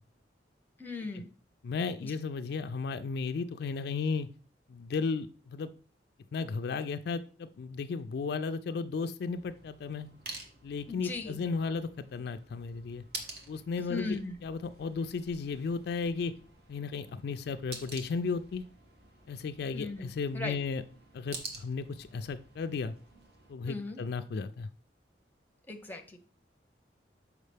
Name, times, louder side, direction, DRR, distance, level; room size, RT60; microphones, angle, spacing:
voice 1, 0.8-1.3 2.0-2.1 10.9-11.4 13.9-14.3 19.7-20.6 23.7-24.0 25.7-26.2, left 3 dB, 10° left, 5 dB, 0.7 m, -38 dB
voice 2, 1.6-4.3 4.7-5.7 6.3-10.1 10.6-13.0 13.5-16.3 16.7-18.6 19.3-20.8 21.1-22.9 23.5-24.7, left 4 dB, 60° left, 9 dB, 0.3 m, -34 dB
sound 1, 9.3-23.5, right 3 dB, 60° right, 1.1 m, -49 dB
6.4 x 4.7 x 3.3 m, 0.39 s
head